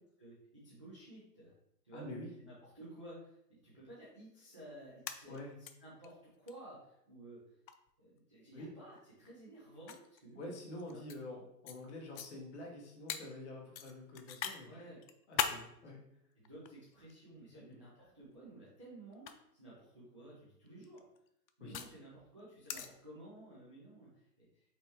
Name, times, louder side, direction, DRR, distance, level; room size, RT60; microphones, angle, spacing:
voice 1, 0.2-1.5 1.8-2.1 2.4-7.4 8.0-10.6 10.9-11.0 14.6-15.0 16.4-21.1 21.6-24.7, right 1 dB, 20° right, -9 dB, 0.5 m, -54 dB
voice 2, 1.9-2.3 5.3-5.5 8.5-8.8 10.4-14.7 15.3-16.0 17.3-17.7 21.6-21.7, left 1 dB, 40° left, -1 dB, 1.2 m, -47 dB
sound 1, 4.8-5.7 6.0-6.1 6.5-6.6 7.7-7.9 9.0-9.1 9.9-11.2 11.7-11.8 12.1-12.3 13.1-13.2 13.8-14.6 15.0-15.6 16.4-17.2 18.2-18.5 19.1-19.3 20.7-21.9 22.7-22.9, left 8 dB, 90° left, 0.7 m, -39 dB
5.3 x 3.4 x 3.0 m, 0.76 s
hypercardioid pair, 165°, 50 cm